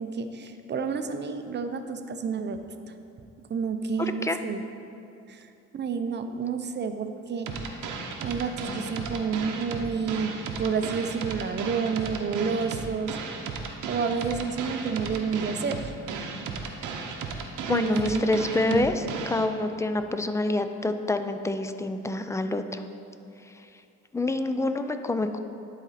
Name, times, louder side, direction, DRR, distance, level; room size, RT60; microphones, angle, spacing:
voice 1, 0.0-2.6 3.5-4.6 5.3-5.4 5.7-7.6 8.2-10.3 10.6-13.2 13.9-15.9 17.7-19.1, right 5 dB, 35° right, 8 dB, 0.6 m, -30 dB
voice 2, 4.0-4.4 17.7-22.8 24.1-25.4, left 2 dB, 10° left, 8 dB, 0.3 m, -27 dB
sound 1, 7.5-19.5, right 5 dB, 80° right, 0.8 m, -35 dB
11.0 x 4.2 x 4.1 m, 2.7 s
cardioid pair, 90°, 30 cm